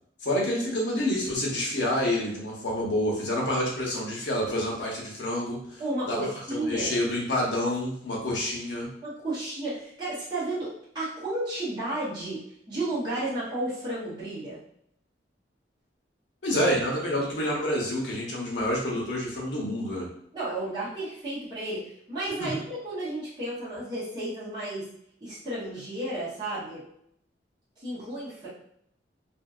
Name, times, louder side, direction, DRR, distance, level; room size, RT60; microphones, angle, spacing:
voice 1, 0.2-6.2 6.5-8.9 16.4-20.1 22.4-22.6, left 1 dB, 80° left, -2 dB, 0.9 m, -28 dB
voice 2, 5.8-6.9 9.0-10.7 10.9-12.4 12.7-14.6 20.3-24.8 25.2-26.8 27.8-28.5, right 1 dB, 25° right, -12 dB, 1.2 m, -32 dB
2.8 x 2.7 x 2.4 m, 0.71 s
head